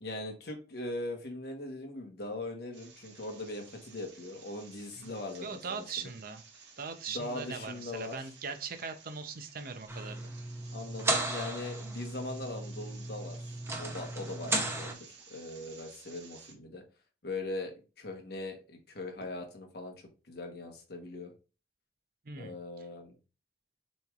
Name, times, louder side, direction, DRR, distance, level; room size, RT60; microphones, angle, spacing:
voice 1, 0.0-6.1 7.1-8.2 10.7-16.8 17.2-19.9 20.3-21.3 22.4-23.1, left 2 dB, 65° left, 3 dB, 1.2 m, -40 dB
sound 1, 2.7-16.5, right 5 dB, 85° right, 1.4 m, -55 dB
voice 2, 5.4-6.4 6.8-10.3 13.6-13.7 22.2-22.9, right 5 dB, 55° right, 8 dB, 0.6 m, -40 dB
sound 2, 9.9-14.9, right 2 dB, 15° right, 0.7 m, -35 dB
6.9 x 3.1 x 2.4 m, 0.33 s
head